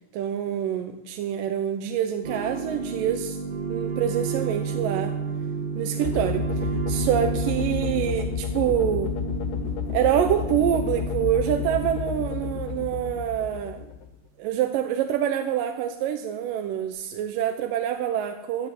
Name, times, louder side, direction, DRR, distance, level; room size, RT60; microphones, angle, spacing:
voice 1, 0.1-3.4 3.7-5.1 5.8-9.1 9.9-13.9 14.4-18.7, right 10 dB, 85° right, 6 dB, 2.5 m, -26 dB
sound 1, 2.2-13.7, right 5 dB, 55° right, 1.4 m, -31 dB
sound 2, 6.0-14.2, left 11 dB, 85° left, 2.4 m, -31 dB
13.0 x 12.5 x 8.0 m, 0.94 s
omnidirectional pair, 3.8 m